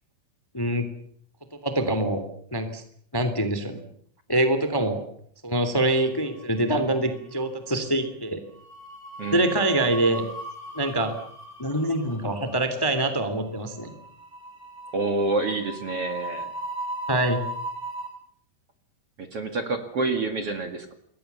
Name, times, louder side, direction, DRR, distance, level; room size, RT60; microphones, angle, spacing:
voice 1, 0.5-0.9 1.6-2.2 2.5-2.8 3.1-3.8 4.3-5.0 5.4-8.4 9.3-10.2 10.7-11.1 11.6-13.9 17.1-17.4, right 1 dB, 5° left, 9 dB, 1.9 m, -24 dB
sound 1, 6.0-6.8 7.1-7.3 8.5-18.1, right 1 dB, 20° right, 7.4 m, -38 dB
voice 2, 9.2-9.6 14.9-16.5 19.2-20.9, right 3 dB, 45° right, 6 dB, 2.5 m, -28 dB
27.5 x 22.0 x 7.0 m, 0.66 s
omnidirectional pair, 4.6 m